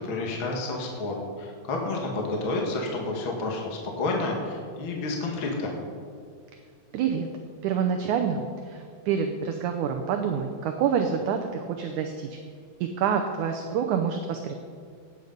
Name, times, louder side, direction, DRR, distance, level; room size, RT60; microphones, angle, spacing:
voice 1, 0.0-5.7, left 2 dB, 45° left, 0 dB, 1.8 m, -30 dB
voice 2, 6.9-7.3 7.6-12.4 12.8-14.5, right 7 dB, 75° right, 4 dB, 1.9 m, -27 dB
17.5 x 8.2 x 5.3 m, 2.1 s
omnidirectional pair, 4.1 m